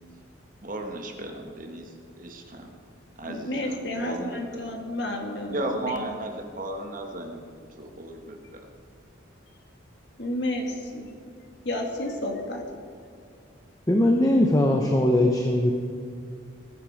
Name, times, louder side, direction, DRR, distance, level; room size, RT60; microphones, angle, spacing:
voice 1, 0.6-2.7 3.2-4.6 5.5-8.6, right 1 dB, 40° right, 3 dB, 1.3 m, -35 dB
voice 2, 3.2-6.1 10.2-11.1 11.6-12.6, left 1 dB, 55° left, 2 dB, 2.1 m, -31 dB
voice 3, 13.9-15.7, left 1 dB, 15° left, 2 dB, 0.8 m, -20 dB
20.0 x 9.7 x 5.0 m, 2.3 s
head